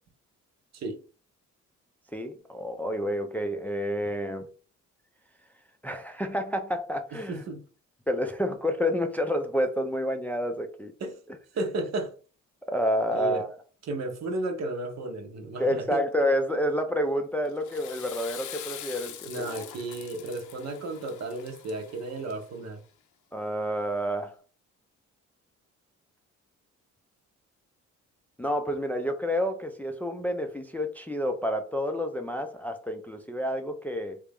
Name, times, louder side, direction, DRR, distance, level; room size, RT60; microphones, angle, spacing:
voice 1, 2.1-4.5 5.8-7.4 8.1-10.9 12.7-13.5 15.6-19.6 23.3-24.3 28.4-34.2, equal, 5° left, 0.4 m, -29 dB
voice 2, 7.1-7.6 11.0-11.2 11.5-12.1 13.1-13.5 13.9-16.1 19.3-22.8, right 2 dB, 60° right, 0.9 m, -33 dB
Water / Toilet flush, 17.4-22.7, left 11 dB, 75° left, 0.5 m, -44 dB
3.3 x 2.5 x 3.4 m
cardioid pair, 90°, 30 cm